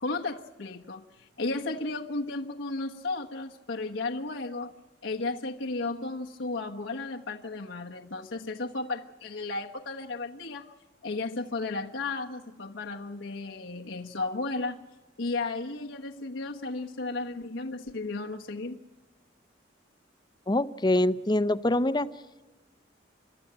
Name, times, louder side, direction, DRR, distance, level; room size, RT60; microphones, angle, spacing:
voice 1, 0.0-4.7 5.0-10.7 11.0-14.8 15.2-18.8, left 3 dB, 85° left, 0 dB, 1.2 m, -34 dB
voice 2, 20.5-22.1, left 1 dB, 20° left, 15 dB, 0.6 m, -24 dB
30.0 x 13.0 x 8.7 m, 1.2 s
head